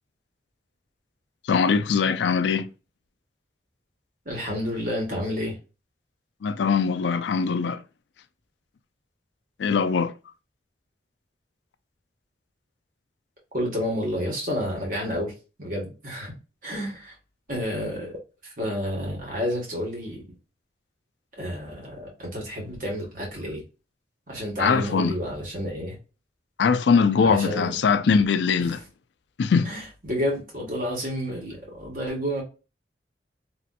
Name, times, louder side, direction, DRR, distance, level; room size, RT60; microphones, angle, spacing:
voice 1, 1.5-2.7 6.4-7.8 9.6-10.1 24.6-25.2 26.6-28.8 29.4-29.7, left 5 dB, 80° left, 0.4 m, -21 dB
voice 2, 4.2-5.6 13.5-15.3 15.6-16.3 16.6-17.1 17.5-18.2 18.6-20.2 21.4-23.6 24.3-26.0 27.2-27.8 29.6-32.4, equal, 50° right, 1.7 m, -30 dB
3.1 x 2.8 x 2.4 m
head